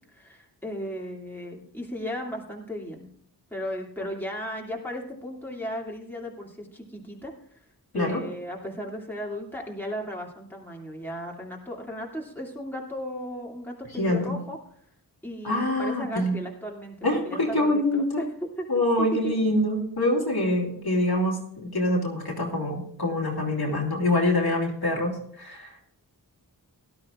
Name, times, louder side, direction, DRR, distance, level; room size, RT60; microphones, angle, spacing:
voice 1, 0.1-3.1 3.5-7.3 7.9-14.6 15.2-19.4, equal, 5° left, -2 dB, 2.6 m, -35 dB
voice 2, 14.0-14.4 15.4-16.4 17.0-18.2 18.7-25.9, left 1 dB, 60° left, -1 dB, 2.6 m, -25 dB
17.5 x 12.0 x 2.5 m, 0.64 s
wide cardioid pair, 55°, 42 cm